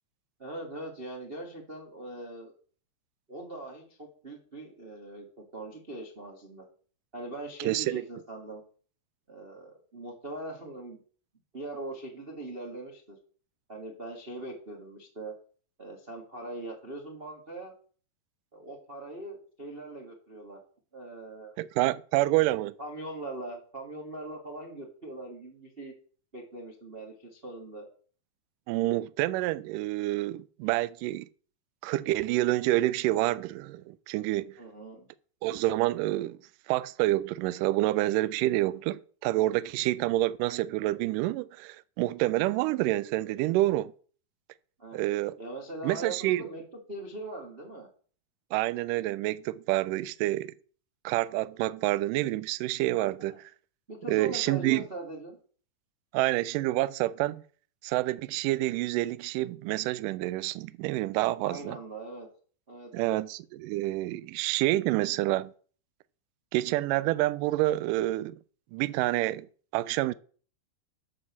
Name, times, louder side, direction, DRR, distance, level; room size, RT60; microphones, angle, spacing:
voice 1, 0.4-2.5 3.3-5.3 5.5-6.6 7.1-8.6 9.3-11.0 11.5-13.2 13.7-15.3 15.8-17.7 18.5-20.6 20.9-21.5 22.8-25.9 26.3-27.8 34.6-35.1 44.8-45.0 45.4-46.6 46.9-47.9 49.9-50.1 53.2-53.4 53.9-55.4 61.4-62.3 62.7-63.2, right 2 dB, 55° right, 0.6 m, -41 dB
voice 2, 7.6-8.0 21.6-22.7 28.7-31.3 31.8-34.6 35.4-36.4 36.7-43.9 44.9-45.4 45.8-46.5 48.5-50.5 51.0-53.4 54.1-54.8 56.1-57.4 57.8-61.8 62.9-65.5 66.5-68.4 68.7-69.5 69.7-70.1, right 17 dB, 85° right, 1.9 m, -28 dB
7.5 x 6.2 x 7.1 m
omnidirectional pair, 4.3 m